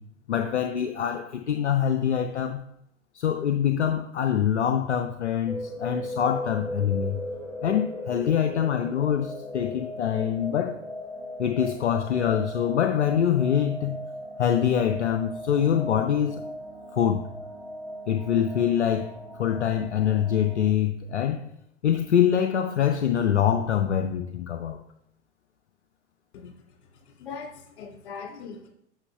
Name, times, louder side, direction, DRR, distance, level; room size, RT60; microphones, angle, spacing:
voice 1, 0.3-2.6 3.1-7.2 7.6-10.8 11.4-14.0 14.4-16.4 16.9-17.3 18.1-19.1 19.4-21.5 21.8-24.8, left 9 dB, 75° left, 0.6 m, -24 dB
sound 1, 5.5-20.7, left 1 dB, 5° left, 1.0 m, -37 dB
voice 2, 26.9-28.7, left 5 dB, 50° left, 2.5 m, -40 dB
9.7 x 6.4 x 2.3 m
figure-of-eight pair, 90°, 35 cm